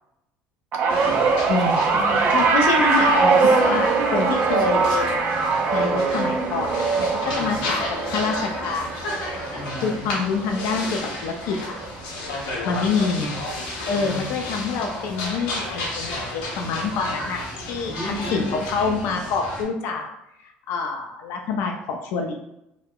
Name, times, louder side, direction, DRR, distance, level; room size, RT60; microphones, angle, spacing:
sound 1, 0.7-11.2 11.5-11.9 13.0-13.1, right 4 dB, 45° right, 0.3 m, -22 dB
sound 2, 0.9-19.6, left 2 dB, 90° left, 0.7 m, -33 dB
voice 1, 0.9-1.6 1.9-2.5 3.3-3.7 7.3-7.6 9.5-10.2 13.0-13.5 13.9-14.3 17.9-18.7, left 1 dB, 5° left, -3 dB, 0.7 m, -35 dB
voice 2, 1.5-1.9 2.3-5.4 5.7-7.1 7.4-9.4 9.8-11.8 12.6-13.4 13.9-20.1 20.4-22.3, left 4 dB, 70° left, 2 dB, 0.4 m, -27 dB
2.8 x 2.0 x 2.2 m, 0.86 s
supercardioid pair, 95°, 4 cm